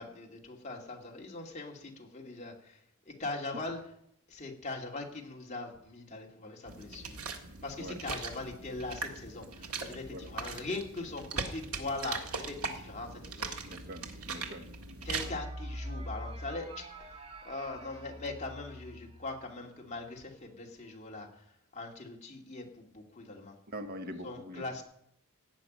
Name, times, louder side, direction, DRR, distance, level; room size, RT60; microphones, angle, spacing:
voice 1, 0.0-2.8 3.1-3.8 4.3-7.2 7.6-13.5 15.0-16.8 17.4-21.3 21.7-23.6 24.2-24.8, left 2 dB, 30° left, 0 dB, 2.5 m, -41 dB
sound 1, 6.7-15.3, right 4 dB, 80° right, 1.8 m, -40 dB
voice 2, 13.6-14.7 23.7-24.6, equal, 45° right, 7 dB, 1.2 m, -43 dB
sound 2, 15.0-21.0, equal, 25° right, 1.6 m, -45 dB
17.0 x 6.0 x 9.3 m, 0.74 s
head